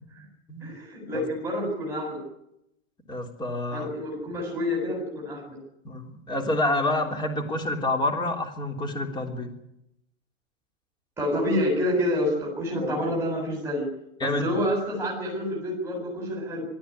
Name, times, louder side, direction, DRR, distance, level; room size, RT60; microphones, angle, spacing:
voice 1, 0.6-2.2 3.7-5.6 11.2-13.9 14.2-16.7, left 1 dB, 5° right, -3 dB, 7.5 m, -28 dB
voice 2, 3.1-3.9 5.8-9.5 12.7-12.9 14.2-14.4, left 2 dB, 10° left, 4 dB, 3.3 m, -28 dB
23.0 x 13.5 x 9.9 m, 0.83 s
hypercardioid pair, 140°, 40 cm